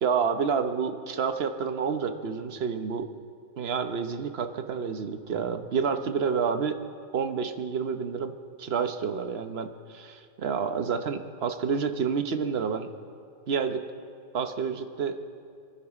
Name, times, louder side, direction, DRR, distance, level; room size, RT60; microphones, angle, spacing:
voice 1, 0.0-3.1 3.6-6.8 7.1-12.9 13.5-13.8 14.3-15.2, right 6 dB, 65° right, 8 dB, 1.1 m, -29 dB
24.5 x 11.5 x 4.9 m, 2.3 s
omnidirectional pair, 1.1 m